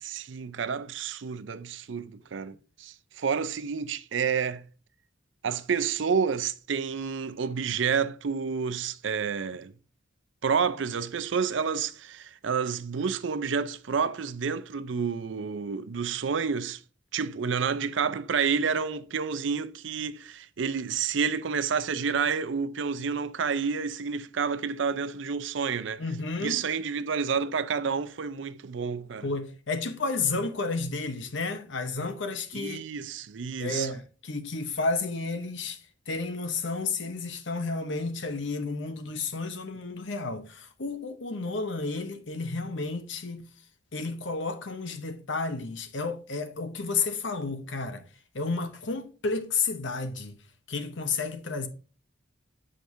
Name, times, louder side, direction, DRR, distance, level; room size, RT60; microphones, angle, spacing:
voice 1, 0.0-4.7 5.4-9.7 10.4-16.8 17.1-26.0 26.4-29.3 32.5-33.9, right 6 dB, 65° right, 0.5 m, -29 dB
voice 2, 26.0-26.6 29.2-32.8 33.6-35.8 36.1-43.5 43.9-48.0 48.3-50.4 50.7-51.7, left 3 dB, 65° left, 0.9 m, -31 dB
7.7 x 5.1 x 2.6 m
head